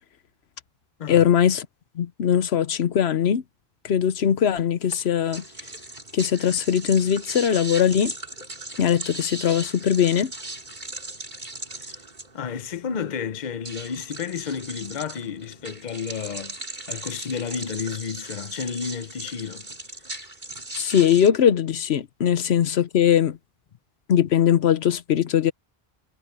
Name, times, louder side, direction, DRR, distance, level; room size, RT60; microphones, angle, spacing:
voice 1, 1.1-1.7 2.0-3.4 3.8-5.4 6.1-8.1 8.8-10.3 20.7-23.4 24.1-25.5, left 9 dB, 85° left, 1.0 m, -20 dB
sound 1, 4.9-21.3, right 2 dB, 45° right, 3.9 m, -38 dB
voice 2, 12.3-19.7, left 6 dB, 50° left, 0.8 m, -32 dB
omnidirectional pair, 1.1 m